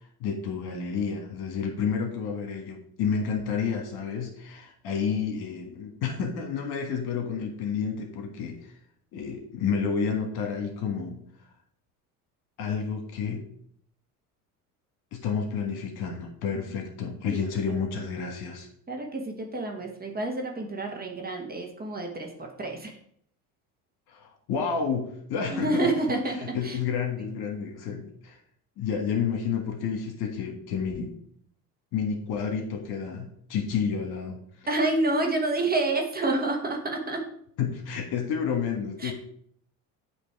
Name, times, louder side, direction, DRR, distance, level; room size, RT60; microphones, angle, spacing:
voice 1, 0.2-8.7 9.1-11.2 12.6-13.4 15.1-18.7 24.1-25.9 26.5-28.4 28.8-31.1 31.9-34.7 37.6-39.1, left 6 dB, 60° left, 3 dB, 1.7 m, -30 dB
voice 2, 17.3-18.1 18.9-23.0 25.5-26.8 27.2-27.3 34.7-37.3 39.0-39.1, right 2 dB, 20° right, 2 dB, 1.3 m, -29 dB
8.4 x 3.0 x 4.8 m, 0.66 s
supercardioid pair, 85°, 42 cm